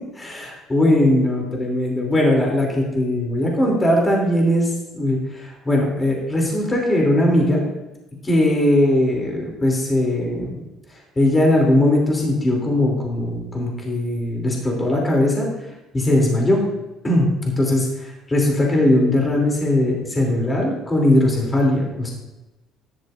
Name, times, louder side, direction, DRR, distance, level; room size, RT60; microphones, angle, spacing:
voice 1, 0.1-4.7 4.9-7.6 8.2-10.6 11.2-15.5 15.9-16.6 17.0-17.3 17.6-22.1, left 1 dB, 15° left, -1 dB, 3.1 m, -19 dB
13.0 x 11.5 x 2.6 m, 1.0 s
cardioid pair, 125°, 0 cm